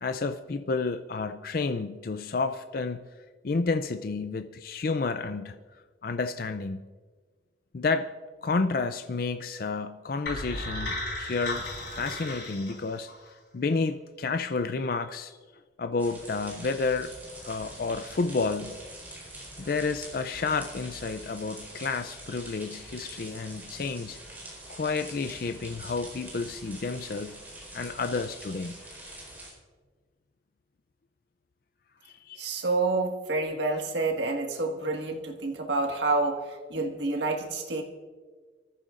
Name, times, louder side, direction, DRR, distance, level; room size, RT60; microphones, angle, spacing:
voice 1, 0.0-3.0 3.4-5.6 6.0-6.8 7.7-8.1 8.4-13.1 13.5-15.4 15.8-17.1 17.4-18.8 19.6-24.2 24.7-27.4 27.7-28.8 32.0-32.5, left 4 dB, 55° left, 0.4 m, -30 dB
sound 1, 10.2-13.3, left 1 dB, 75° left, 4.4 m, -35 dB
sound 2, 16.0-29.5, right 1 dB, 10° right, 4.5 m, -44 dB
voice 2, 32.4-37.8, right 3 dB, 80° right, 1.7 m, -28 dB
24.0 x 14.0 x 2.5 m
head